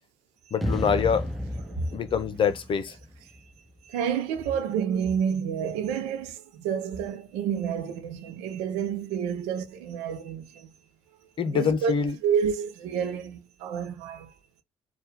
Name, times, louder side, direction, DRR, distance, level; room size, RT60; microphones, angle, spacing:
voice 1, 0.5-1.3 1.9-3.0 11.4-12.2, left 6 dB, 45° left, 0.8 m, -25 dB
sound 1, 0.6-3.8, equal, ahead, 0.8 m, -33 dB
voice 2, 3.9-10.7 11.5-11.9 12.2-14.3, right 7 dB, 65° right, 0.7 m, -29 dB
4.4 x 2.4 x 3.4 m
figure-of-eight pair, 45°, 12 cm